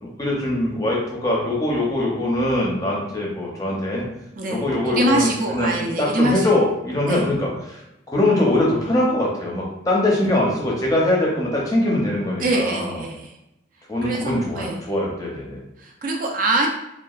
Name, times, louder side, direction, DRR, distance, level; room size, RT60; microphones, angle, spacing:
voice 1, 0.0-4.1 4.5-13.0 13.9-15.6, left 1 dB, 20° left, -3 dB, 0.6 m, -22 dB
voice 2, 4.4-6.4 7.1-7.2 12.4-13.3 14.0-14.8 15.8-16.7, right 1 dB, 45° right, 1 dB, 0.4 m, -23 dB
2.8 x 2.2 x 2.3 m, 0.88 s
head